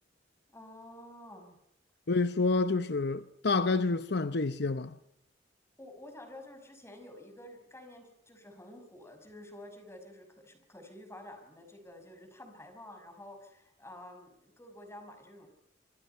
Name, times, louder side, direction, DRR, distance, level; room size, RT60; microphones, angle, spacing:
voice 1, 0.5-1.6 5.8-15.5, left 1 dB, 15° left, 5.8 m, -50 dB
voice 2, 2.1-5.0, left 3 dB, 65° left, 0.9 m, -28 dB
25.5 x 25.5 x 5.7 m
head